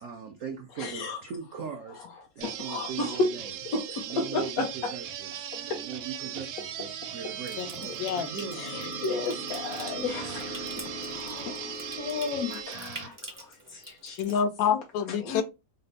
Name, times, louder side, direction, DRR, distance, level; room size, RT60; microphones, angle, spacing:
voice 1, 0.0-3.5 4.0-8.6, right 6 dB, 70° right, 0.7 m, -40 dB
voice 2, 0.8-1.2 1.9-2.2 2.4-4.9 5.5-5.8 6.4-6.5 6.8-6.9 7.8-8.0 8.5-14.2 15.1-15.4, left 3 dB, 65° left, 0.9 m, -33 dB
sound 1, 2.4-13.1, right 10 dB, 90° right, 1.4 m, -39 dB
sound 2, 6.1-12.6, left 1 dB, 35° left, 0.7 m, -42 dB
Water tap faucet / Sink (filling or washing) / Trickle dribble, 7.4-14.4, right 2 dB, 30° right, 0.4 m, -47 dB
voice 3, 14.2-15.4, left 7 dB, 80° left, 1.3 m, -27 dB
4.2 x 2.0 x 4.0 m
omnidirectional pair, 2.1 m